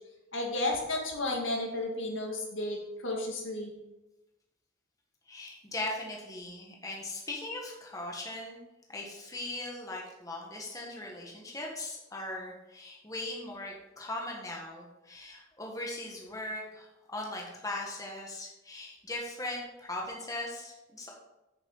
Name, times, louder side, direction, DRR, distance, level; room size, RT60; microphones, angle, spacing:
voice 1, 0.3-3.7, left 2 dB, 75° left, 0 dB, 2.1 m, -33 dB
voice 2, 5.3-8.6 8.9-21.1, left 2 dB, 15° left, -1 dB, 1.4 m, -39 dB
8.4 x 7.3 x 4.0 m, 0.98 s
head